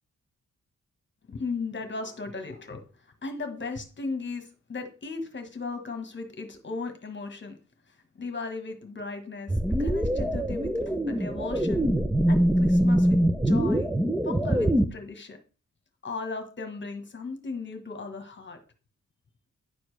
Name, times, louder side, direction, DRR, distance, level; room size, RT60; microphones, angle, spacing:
voice 1, 1.3-2.8 3.2-7.6 8.2-10.7 11.1-11.9 12.3-13.9 14.2-15.4 16.0-18.6, left 3 dB, 40° left, 6 dB, 1.4 m, -36 dB
sound 1, 9.5-14.9, equal, 5° right, 0.6 m, -23 dB
10.5 x 7.0 x 3.3 m, 0.35 s
wide cardioid pair, 140°, 30 cm